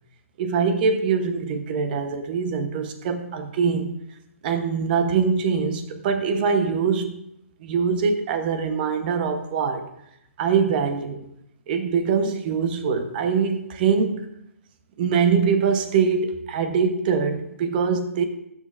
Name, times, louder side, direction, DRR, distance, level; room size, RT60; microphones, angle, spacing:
voice 1, 0.4-4.0 4.4-7.2 7.6-9.9 10.4-11.2 11.7-14.3 15.0-18.2, right 5 dB, 40° right, 8 dB, 1.0 m, -23 dB
15.5 x 6.6 x 2.6 m, 0.80 s
hypercardioid pair, 140°, 8 cm